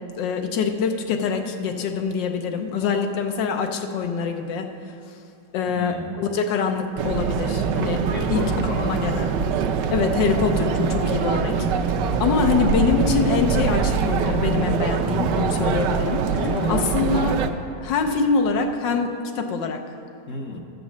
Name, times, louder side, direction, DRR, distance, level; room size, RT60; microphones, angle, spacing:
voice 1, 0.2-4.7 5.5-8.0 8.3-8.4 8.8-9.3 9.9-11.5 12.2-16.2 16.7-17.4 17.8-19.8, left 5 dB, 85° left, 5 dB, 1.4 m, -24 dB
voice 2, 5.7-6.2 8.1-9.0 11.2-11.3 16.3-17.1 20.3-20.6, left 3 dB, 60° left, 1 dB, 0.9 m, -32 dB
sound 1, 7.0-17.5, right 5 dB, 80° right, 1.2 m, -23 dB
13.0 x 5.3 x 7.2 m, 2.6 s
omnidirectional pair, 1.9 m